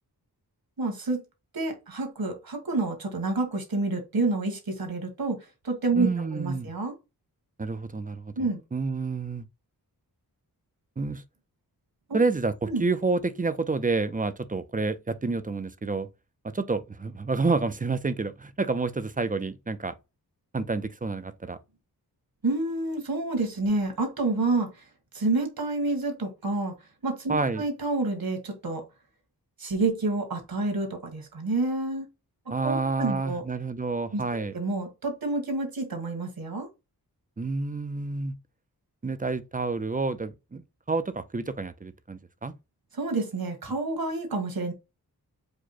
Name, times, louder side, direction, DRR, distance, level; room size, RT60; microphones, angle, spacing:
voice 1, 0.8-1.2 1.5-5.4 5.6-6.9 8.4-8.6 12.1-12.2 12.7-12.8 22.4-24.7 25.1-26.7 27.0-28.8 29.6-32.1 32.6-33.4 34.1-36.7 42.9-44.7, right 3 dB, 65° right, 1.6 m, -28 dB
voice 2, 6.0-6.7 7.6-9.4 11.0-11.2 12.1-16.1 16.4-19.9 20.5-21.6 27.3-27.6 32.5-34.5 37.4-38.4 39.0-40.6 40.9-42.5, right 3 dB, 20° right, 0.4 m, -29 dB
4.9 x 2.1 x 4.1 m
wide cardioid pair, 100°, 38 cm